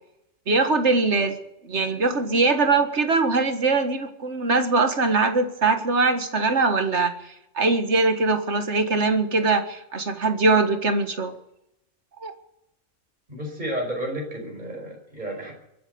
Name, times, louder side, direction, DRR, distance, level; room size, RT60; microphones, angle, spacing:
voice 1, 0.5-1.4 1.6-7.1 7.6-11.4 12.2-12.3, right 3 dB, 60° right, 8 dB, 2.0 m, -22 dB
voice 2, 13.3-15.5, equal, 35° right, 1 dB, 5.5 m, -31 dB
23.0 x 9.0 x 6.8 m, 0.81 s
omnidirectional pair, 1.3 m